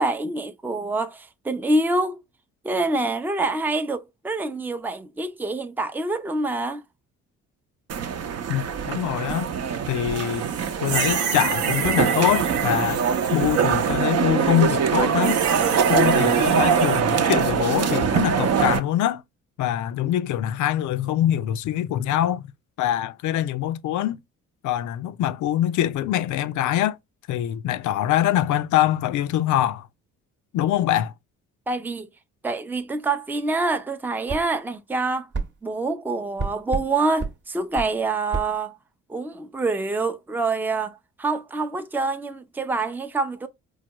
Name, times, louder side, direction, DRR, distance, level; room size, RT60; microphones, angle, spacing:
voice 1, 0.0-2.2 2.6-6.8 31.7-32.1 32.4-35.3 35.6-38.8 39.1-43.5, right 3 dB, 5° right, 0.4 m, -26 dB
sound 1, 7.9-18.8, right 7 dB, 55° right, 0.7 m, -23 dB
voice 2, 8.5-9.5 9.9-10.5 10.8-13.0 13.3-15.4 15.9-19.2 19.6-22.4 22.8-24.2 24.6-27.0 27.3-29.9 30.5-31.1, left 12 dB, 75° left, 0.5 m, -24 dB
sound 2, 10.3-14.0 15.2-17.0, right 7 dB, 80° right, 0.9 m, -29 dB
sound 3, 34.3-34.5 35.3-35.5 36.4-36.9 37.2-37.4 37.8-37.9 38.3-38.5, right 4 dB, 35° right, 0.9 m, -28 dB
4.7 x 2.2 x 2.8 m
cardioid pair, 90°, 30 cm